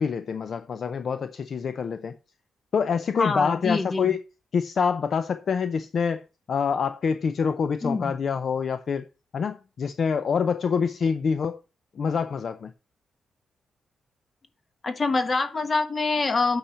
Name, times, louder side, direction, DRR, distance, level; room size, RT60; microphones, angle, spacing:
voice 1, 0.0-2.2 2.7-4.2 4.5-9.1 9.3-11.6 11.9-12.7, left 6 dB, 45° left, 0.6 m, -26 dB
voice 2, 3.2-4.1 7.8-8.1 14.8-16.6, left 3 dB, 25° left, 1.2 m, -25 dB
8.6 x 5.7 x 6.9 m
wide cardioid pair, 165°, 0 cm